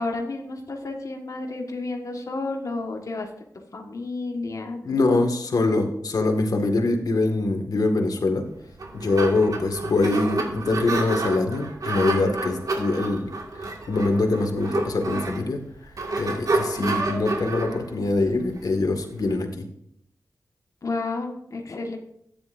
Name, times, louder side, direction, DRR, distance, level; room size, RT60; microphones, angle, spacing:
voice 1, 0.0-3.3 3.7-4.8 20.8-22.0, left 3 dB, 60° left, 2 dB, 1.5 m, -31 dB
voice 2, 4.8-8.5 8.9-19.7, left 2 dB, 75° left, 4 dB, 1.8 m, -24 dB
sound 1, 8.6-19.3, right 2 dB, 65° right, 1.9 m, -29 dB
13.5 x 10.0 x 2.6 m, 0.72 s
wide cardioid pair, 75°, 6 cm